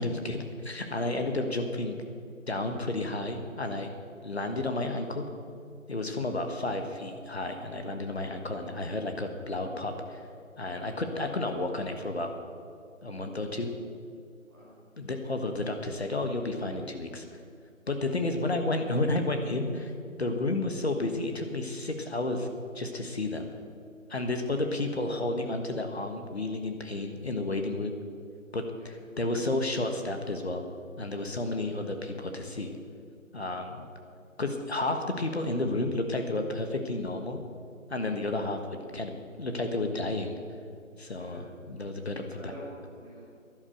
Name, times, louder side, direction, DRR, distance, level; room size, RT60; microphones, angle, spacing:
voice 1, 0.0-2.0 2.5-3.9 4.2-5.3 5.9-10.2 10.6-12.3 13.0-13.7 15.0-17.2 17.9-19.9 20.2-22.5 22.7-23.5 24.1-27.9 28.5-30.6 31.0-32.7 33.3-33.9 34.4-37.4 37.9-40.3 41.0-42.4, left 2 dB, 50° left, 5 dB, 1.4 m, -31 dB
voice 2, 42.2-43.3, equal, ahead, -26 dB, 1.2 m, -48 dB
11.5 x 11.0 x 6.5 m, 2.4 s
figure-of-eight pair, 170°, 41 cm